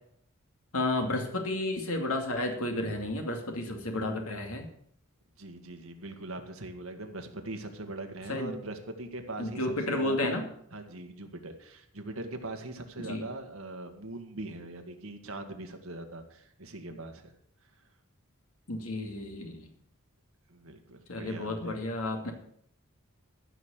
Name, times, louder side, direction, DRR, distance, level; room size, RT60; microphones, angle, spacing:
voice 1, 0.7-4.7 8.3-8.6 9.4-10.5 13.0-13.2 18.7-19.7 21.1-22.3, left 1 dB, 85° left, 3 dB, 2.4 m, -32 dB
voice 2, 5.4-9.6 9.9-10.4 10.7-17.2 20.5-21.8, right 2 dB, 75° right, 6 dB, 1.9 m, -41 dB
14.0 x 6.3 x 8.2 m, 0.68 s
head